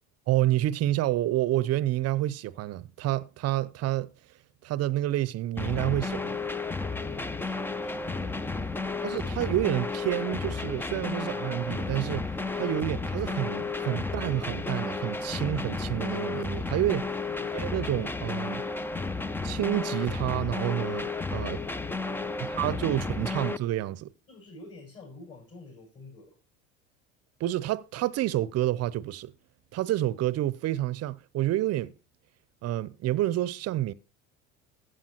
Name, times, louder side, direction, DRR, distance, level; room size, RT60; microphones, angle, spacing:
voice 1, 0.3-4.1 4.6-6.4 9.0-12.3 12.5-17.1 17.5-18.6 19.4-21.6 22.6-24.1 27.4-29.3 29.7-31.9 32.6-33.9, right 14 dB, 40° right, 0.7 m, -29 dB
distorted drums beat, 5.6-23.6, left 3 dB, 5° left, 0.4 m, -32 dB
voice 2, 6.8-8.7 17.3-17.6 22.1-23.5 24.3-26.3, left 2 dB, 40° left, 6.5 m, -49 dB
14.0 x 8.5 x 2.9 m
hypercardioid pair, 70°, 38 cm